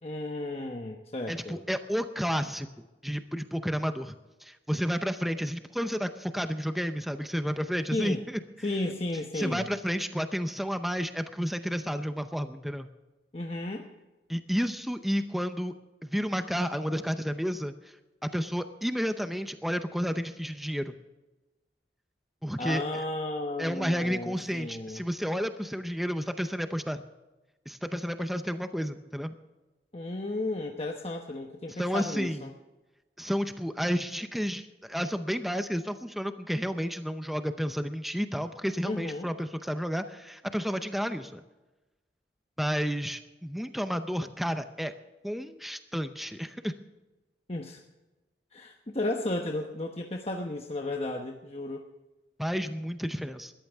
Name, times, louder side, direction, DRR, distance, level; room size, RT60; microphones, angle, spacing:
voice 1, 0.0-1.6 7.9-8.2 8.6-9.7 13.3-13.9 22.6-25.0 29.9-32.5 38.8-39.3 47.5-47.8 48.5-51.8, left 2 dB, 35° left, 2 dB, 1.1 m, -33 dB
voice 2, 1.3-4.2 4.4-8.2 9.3-12.9 14.3-15.7 16.0-17.9 18.2-20.9 22.4-22.8 23.6-27.0 27.7-29.4 31.7-32.4 33.2-41.4 42.6-44.9 45.2-46.7 52.4-53.5, equal, ahead, 8 dB, 0.6 m, -31 dB
20.5 x 14.0 x 3.5 m, 1.1 s
head